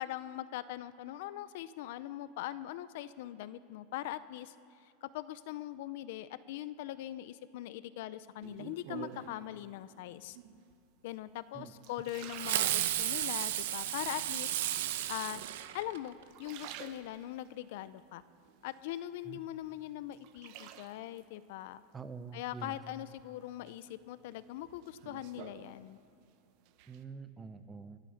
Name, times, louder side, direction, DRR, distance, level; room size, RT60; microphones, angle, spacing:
voice 1, 0.0-4.5 4.8-10.4 11.0-14.5 15.1-15.4 15.7-18.2 18.6-21.8 22.3-26.0, left 14 dB, 65° left, 15 dB, 0.5 m, -41 dB
sound 1, 8.4-9.5 10.3-10.8 11.3-13.3 13.8-14.4 15.2-15.8 16.2-17.5 18.0-19.2 19.6-21.2 22.6-23.2 23.7-26.3 26.5-27.0, right 10 dB, 50° right, 1.0 m, -50 dB
Fireworks, 12.3-16.2, right 13 dB, 75° right, 0.9 m, -33 dB
voice 2, 21.9-22.8 26.9-28.0, right 5 dB, 15° right, 12 dB, 0.7 m, -46 dB
22.0 x 9.0 x 6.4 m, 2.8 s
supercardioid pair, 150°, 0 cm